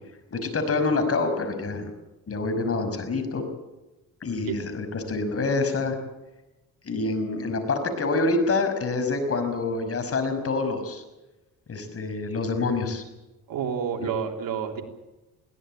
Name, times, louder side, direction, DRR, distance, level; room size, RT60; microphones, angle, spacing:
voice 1, 0.3-1.9 2.3-3.4 4.2-6.0 6.8-11.0 11.7-13.0 14.0-14.1, left 3 dB, 40° left, 7 dB, 5.8 m, -26 dB
voice 2, 13.5-14.8, right 7 dB, 75° right, 4 dB, 3.5 m, -29 dB
22.0 x 17.5 x 8.8 m, 1.0 s
cardioid pair, 95°, 34 cm